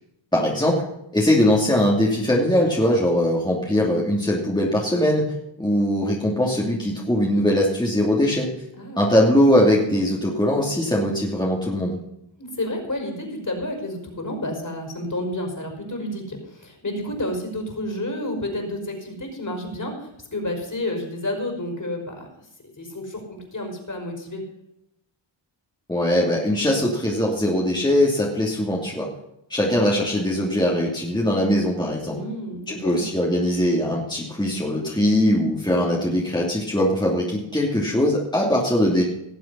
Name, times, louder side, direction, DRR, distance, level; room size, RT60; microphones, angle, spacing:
voice 1, 0.3-0.8 1.1-5.2 5.6-8.5 9.0-12.0 25.9-29.1 29.5-32.2 32.7-39.0, left 1 dB, 10° left, -3 dB, 2.8 m, -21 dB
voice 2, 8.8-9.2 12.4-22.3 22.8-24.4 32.1-33.0, left 1 dB, 40° left, 2 dB, 5.0 m, -30 dB
18.5 x 7.6 x 5.5 m, 0.82 s
wide cardioid pair, 85°, 48 cm